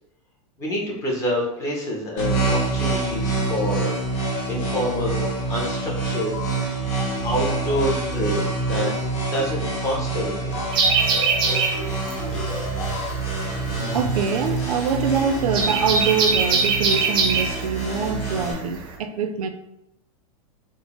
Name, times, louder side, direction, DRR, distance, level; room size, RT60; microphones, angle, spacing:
voice 1, 0.6-4.0 4.5-6.8 7.2-8.9 9.3-10.5 12.7-13.0, left 1 dB, 15° left, -2 dB, 0.7 m, -27 dB
sound 1, 2.2-18.5, right 3 dB, 35° left, 1.2 m, -26 dB
sound 2, 6.3-6.6 6.9-7.2 7.5-7.8 8.1-8.4 8.7-9.0 9.3-9.6 9.9-10.2 10.5-13.2, left 5 dB, 55° left, 0.5 m, -36 dB
sound 3, 10.7-19.0, right 4 dB, 25° right, 0.5 m, -23 dB
voice 2, 13.9-19.5, right 6 dB, 85° right, 8 dB, 0.5 m, -24 dB
3.9 x 2.0 x 3.6 m, 0.86 s
supercardioid pair, 150°, 18 cm